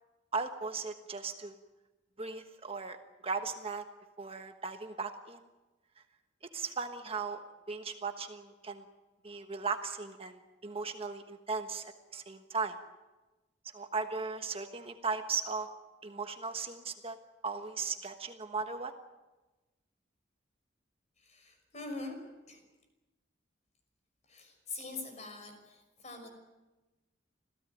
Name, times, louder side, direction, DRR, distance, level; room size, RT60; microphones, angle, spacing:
voice 1, 0.3-1.6 2.2-3.0 3.2-3.9 4.2-5.4 6.5-8.8 9.2-12.8 13.7-15.7 16.0-17.2 17.4-18.9, right 4 dB, 30° right, 7 dB, 1.3 m, -37 dB
voice 2, 21.2-22.2 22.5-22.6 24.3-26.3, left 3 dB, 40° left, 5 dB, 5.7 m, -44 dB
27.0 x 16.5 x 9.3 m, 1.1 s
head